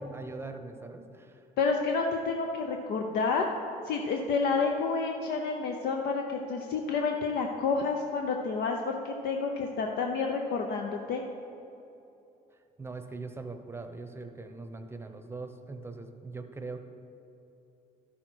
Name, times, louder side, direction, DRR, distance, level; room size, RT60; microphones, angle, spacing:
voice 1, 0.0-1.4 12.8-16.8, right 3 dB, 15° right, 5 dB, 0.8 m, -41 dB
voice 2, 1.6-3.5 3.8-11.2, left 4 dB, 70° left, 2 dB, 0.7 m, -29 dB
12.5 x 6.3 x 4.4 m, 2.8 s
cardioid pair, 110°, 17 cm